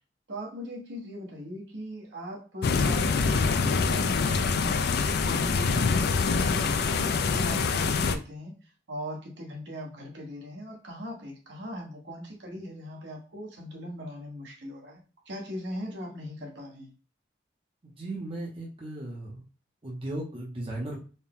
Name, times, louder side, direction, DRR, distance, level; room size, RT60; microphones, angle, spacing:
voice 1, 0.3-16.9, equal, 70° right, 0 dB, 1.2 m, -40 dB
sound 1, 2.6-8.2, left 4 dB, 60° left, 0.4 m, -25 dB
voice 2, 17.8-19.4 19.8-21.0, right 1 dB, 30° right, -2 dB, 0.7 m, -36 dB
4.2 x 2.1 x 3.6 m, 0.36 s
head